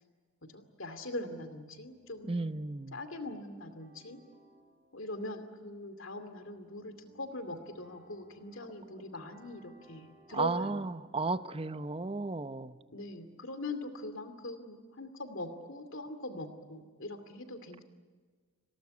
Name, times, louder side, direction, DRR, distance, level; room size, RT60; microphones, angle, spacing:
voice 1, 0.5-2.6 2.9-4.2 4.9-10.9 12.9-17.8, left 1 dB, 70° left, 8 dB, 2.5 m, -42 dB
sound 1, 1.7-14.4, right 2 dB, 60° right, 4.7 m, -63 dB
voice 2, 2.3-3.0 10.3-12.8, right 3 dB, 25° right, 12 dB, 0.7 m, -34 dB
27.0 x 18.0 x 9.6 m, 1.5 s
head